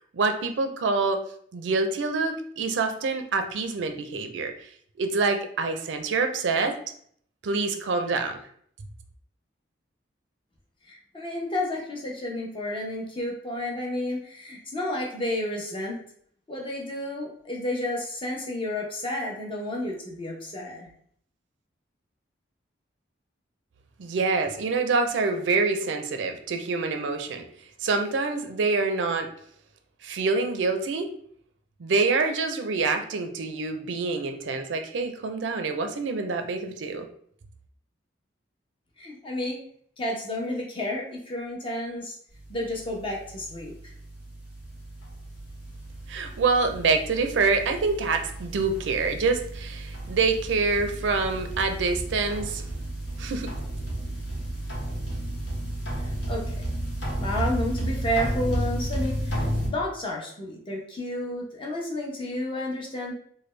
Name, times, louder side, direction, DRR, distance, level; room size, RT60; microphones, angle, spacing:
voice 1, 0.1-1.2 1.5-4.5 5.0-6.8 7.4-8.4 24.0-27.4 27.8-29.3 30.0-31.1 31.8-37.1 46.1-52.6 53.2-53.5, right 4 dB, 75° right, 6 dB, 0.4 m, -26 dB
voice 2, 10.9-16.0 16.5-20.9 39.0-39.6 40.0-42.2 42.5-43.9 56.0-56.7 57.2-63.1, left 1 dB, 30° left, -2 dB, 0.7 m, -31 dB
sound 1, 42.3-59.7, right 1 dB, 70° left, 1.3 m, -33 dB
3.2 x 2.2 x 3.1 m, 0.62 s
head